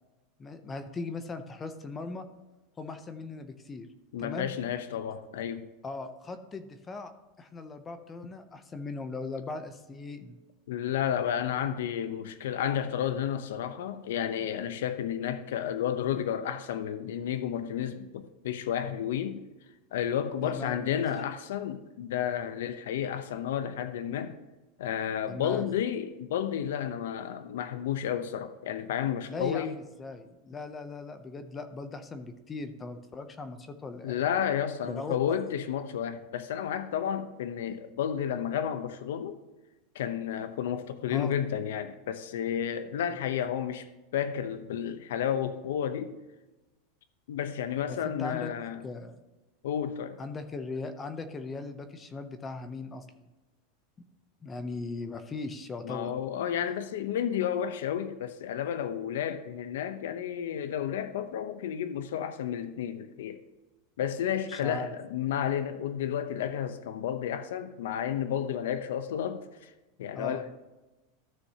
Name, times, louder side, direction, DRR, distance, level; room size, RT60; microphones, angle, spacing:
voice 1, 0.4-2.3 2.8-3.9 4.2-4.5 5.8-7.1 7.4-10.4 20.4-21.0 25.3-25.6 29.3-34.2 34.8-35.4 41.1-41.4 47.9-48.5 48.8-49.2 50.2-53.2 54.4-56.1 64.5-64.9 70.1-70.4, left 3 dB, 15° left, 0.6 m, -39 dB
voice 2, 4.1-5.7 10.7-19.4 19.9-24.3 24.8-29.7 34.0-39.4 39.9-43.9 44.1-46.1 47.3-48.8 49.6-50.2 55.8-63.4 64.0-69.7 70.0-70.7, left 9 dB, 80° left, 0.7 m, -31 dB
14.0 x 6.5 x 2.8 m
supercardioid pair, 165°, 0 cm